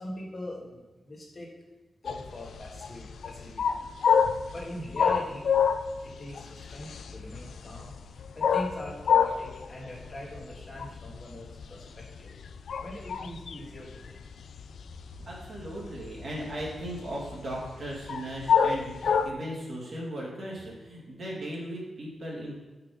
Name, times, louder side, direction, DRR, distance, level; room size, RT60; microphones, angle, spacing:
voice 1, 0.0-1.5 2.0-3.8 4.5-5.5 6.0-7.9 8.3-12.3 12.8-14.3, left 1 dB, 35° left, -3 dB, 1.7 m, -42 dB
sound 1, 2.1-19.3, left 7 dB, 80° left, 0.4 m, -28 dB
voice 2, 15.3-22.6, right 1 dB, 50° right, -4 dB, 2.3 m, -37 dB
5.9 x 5.6 x 5.1 m, 1.2 s
wide cardioid pair, 135°, 0 cm